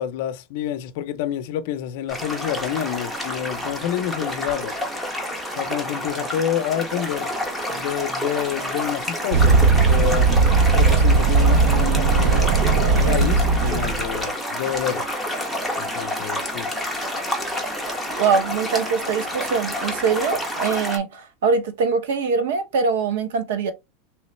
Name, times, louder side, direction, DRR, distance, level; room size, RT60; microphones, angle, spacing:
voice 1, 0.0-4.8 5.5-7.3 7.7-10.3 10.7-15.0 15.8-16.7, left 10 dB, 50° left, 0.5 m, -28 dB
sound 1, 2.1-21.0, left 1 dB, 5° right, 0.7 m, -29 dB
sound 2, 9.3-14.2, right 4 dB, 45° right, 0.4 m, -17 dB
voice 2, 18.2-23.7, right 5 dB, 80° right, 0.9 m, -23 dB
3.2 x 3.0 x 3.1 m
supercardioid pair, 180°, 0 cm